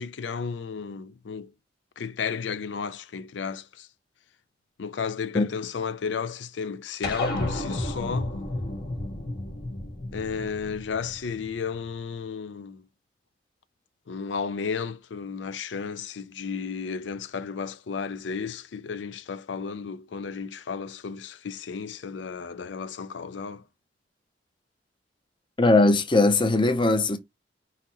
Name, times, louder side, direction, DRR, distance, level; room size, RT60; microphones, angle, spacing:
voice 1, 0.0-1.5 2.0-3.9 4.8-8.3 10.1-12.8 14.1-23.6, left 5 dB, 85° left, 0.5 m, -33 dB
sound 1, 7.0-11.8, left 1 dB, 60° left, 1.8 m, -32 dB
voice 2, 25.6-27.2, left 2 dB, 25° left, 0.7 m, -20 dB
5.7 x 2.9 x 2.9 m
head